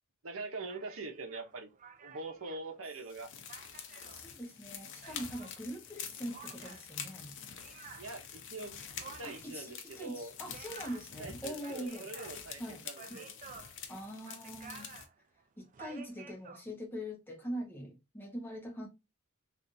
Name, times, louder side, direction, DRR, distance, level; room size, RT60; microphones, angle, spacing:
voice 1, 0.2-1.7 2.0-3.3 8.0-8.7 9.2-10.3 11.2-13.4, right 3 dB, 65° right, 0.7 m, -43 dB
sound 1, 0.7-5.6 6.3-16.6, right 6 dB, 35° right, 0.3 m, -53 dB
sound 2, 3.1-15.1, left 7 dB, 55° left, 0.6 m, -47 dB
voice 2, 4.1-7.3 7.7-8.0 9.2-12.1 12.6-13.2 13.9-14.9 15.6-18.9, equal, 10° left, 0.8 m, -43 dB
3.3 x 2.5 x 2.6 m
head